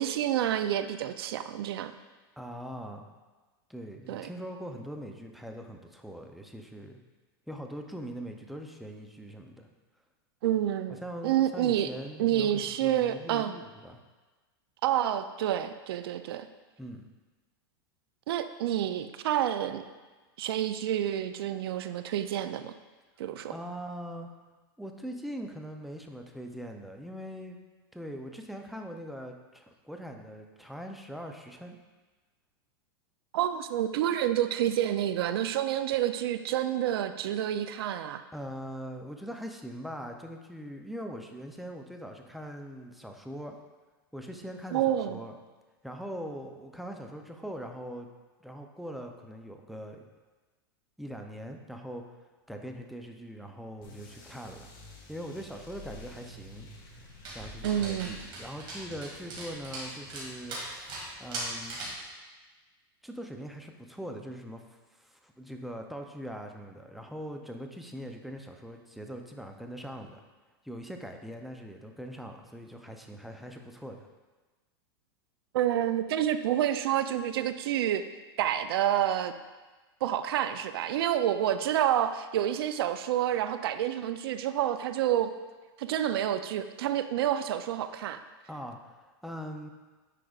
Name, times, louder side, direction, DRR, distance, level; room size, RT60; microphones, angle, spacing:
voice 1, 0.0-1.9 4.1-4.3 10.4-11.9 12.2-13.5 14.8-16.5 18.3-19.8 20.4-22.7 23.2-23.5 33.3-38.2 44.7-45.2 57.6-58.2 75.5-78.0 78.4-79.3 80.0-85.3 85.8-88.2, right 11 dB, 75° right, 11 dB, 0.4 m, -28 dB
voice 2, 2.4-3.1 3.7-7.0 7.5-9.7 11.0-14.0 16.8-17.1 23.5-24.3 24.8-27.6 27.9-31.8 38.3-43.6 44.1-45.3 45.8-48.1 48.4-50.0 51.0-52.0 52.5-54.7 55.1-56.7 57.3-60.6 61.2-61.8 63.0-70.2 70.6-74.1 88.5-89.7, equal, ahead, 3 dB, 0.4 m, -41 dB
sound 1, 53.8-58.6, left 1 dB, 40° left, 1.5 m, -49 dB
Dog, 57.2-62.0, right 2 dB, 40° right, 2.1 m, -40 dB
9.8 x 4.9 x 2.4 m, 1.3 s
supercardioid pair, 135°, 13 cm